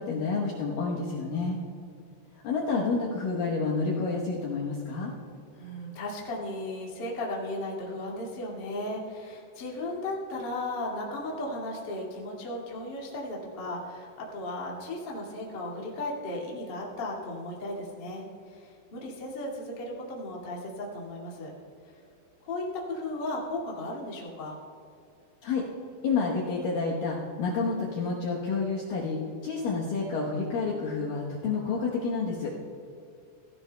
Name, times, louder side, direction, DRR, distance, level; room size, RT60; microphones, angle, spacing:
voice 1, 0.0-1.6 2.4-5.1 25.4-25.7 26.0-32.5, left 4 dB, 85° left, -4 dB, 1.9 m, -29 dB
voice 2, 5.5-21.5 22.4-24.6 32.5-32.6, left 1 dB, 45° left, -4 dB, 1.4 m, -35 dB
16.5 x 16.5 x 2.3 m, 2.5 s
omnidirectional pair, 5.7 m